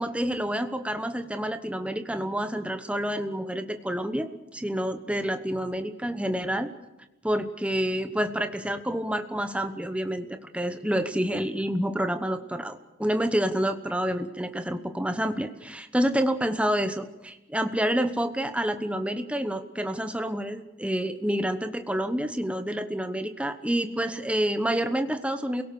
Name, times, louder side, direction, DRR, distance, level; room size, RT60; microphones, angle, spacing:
voice 1, 0.0-6.7 7.2-25.6, equal, 5° right, 8 dB, 1.0 m, -28 dB
29.0 x 17.5 x 6.9 m, 0.98 s
head